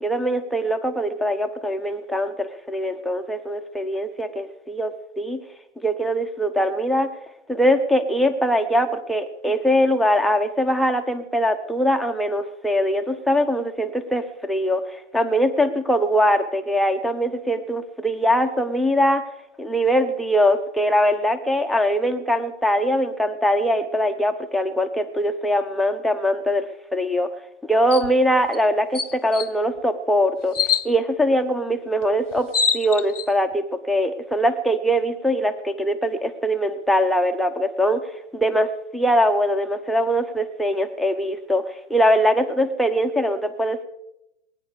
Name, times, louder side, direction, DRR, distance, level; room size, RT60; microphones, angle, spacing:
voice 1, 0.0-5.4 5.8-7.1 7.5-19.2 19.6-26.7 26.9-27.3 27.6-30.6 30.8-32.5 32.7-41.6 41.9-43.8, equal, ahead, 4 dB, 0.7 m, -22 dB
sound 1, 27.9-28.1 28.5-28.6 28.9-29.5 30.5-30.9 32.0-32.1 32.3-33.3, left 6 dB, 80° left, 1.0 m, -23 dB
20.5 x 9.7 x 6.7 m, 0.81 s
hypercardioid pair, 125°, 36 cm